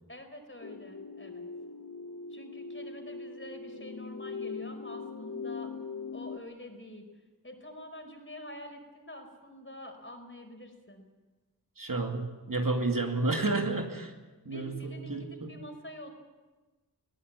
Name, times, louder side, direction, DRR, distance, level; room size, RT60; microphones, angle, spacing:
voice 1, 0.1-1.5 2.3-5.7 6.1-7.0 7.4-11.0 14.4-16.1, left 1 dB, 35° left, 4 dB, 4.7 m, -47 dB
sound 1, 0.6-6.4, left 4 dB, 60° left, 1.2 m, -41 dB
voice 2, 11.8-14.1 14.5-15.6, right 2 dB, 65° right, 3 dB, 2.5 m, -31 dB
21.0 x 17.5 x 8.4 m, 1.2 s
wide cardioid pair, 50°, 36 cm